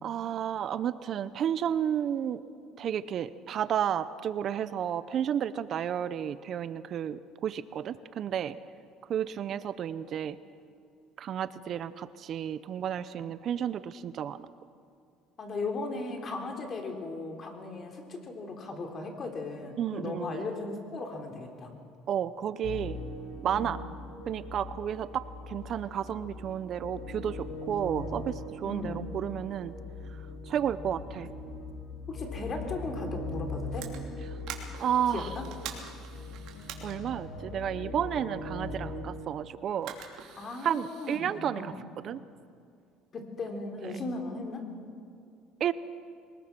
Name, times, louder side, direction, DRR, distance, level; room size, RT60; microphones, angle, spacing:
voice 1, 0.0-2.4 2.8-8.6 9.1-10.4 11.2-14.5 19.8-20.4 22.1-23.0 23.4-23.8 24.3-29.7 30.4-31.3 34.8-35.3 36.8-39.9 40.6-41.7 42.0-42.2 43.8-44.0 45.6-45.7, right 9 dB, 50° right, 15 dB, 0.6 m, -32 dB
voice 2, 15.4-21.7 23.5-23.7 28.6-29.0 32.1-33.9 35.1-35.5 40.4-41.8 43.1-44.6, left 3 dB, 35° left, 3 dB, 3.4 m, -37 dB
sound 1, 22.6-39.1, left 2 dB, 80° left, 4.9 m, -40 dB
sound 2, 33.7-37.8 39.0-39.3 39.8-41.2, right 8 dB, 65° right, 3.0 m, -45 dB
23.0 x 20.5 x 6.0 m, 2.4 s
cardioid pair, 115°, 0 cm